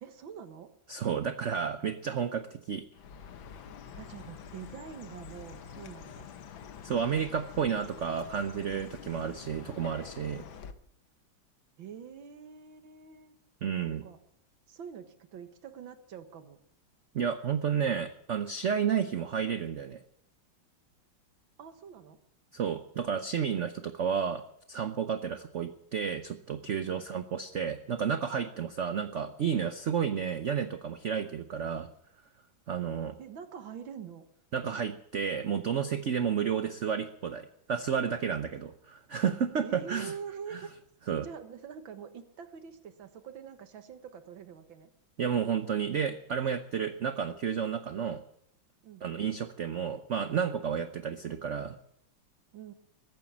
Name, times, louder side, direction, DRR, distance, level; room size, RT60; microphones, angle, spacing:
voice 1, 0.0-0.7 4.0-6.3 11.8-13.3 13.8-14.2 14.7-16.6 21.6-22.2 26.9-27.0 33.2-34.3 39.6-40.7 41.2-44.9 48.8-49.0 52.5-52.7, right 7 dB, 80° right, 8 dB, 2.1 m, -45 dB
voice 2, 0.9-2.8 6.8-10.4 13.6-14.0 17.1-20.0 22.5-24.4 24.7-31.9 32.7-33.2 34.5-40.1 40.5-40.6 41.1-41.3 45.2-48.2 49.0-51.8, right 7 dB, 60° right, 9 dB, 0.8 m, -31 dB
Chirp tweet, 2.9-10.7, left 7 dB, 75° left, 1.8 m, -46 dB
21.5 x 9.3 x 7.3 m, 0.73 s
omnidirectional pair, 2.1 m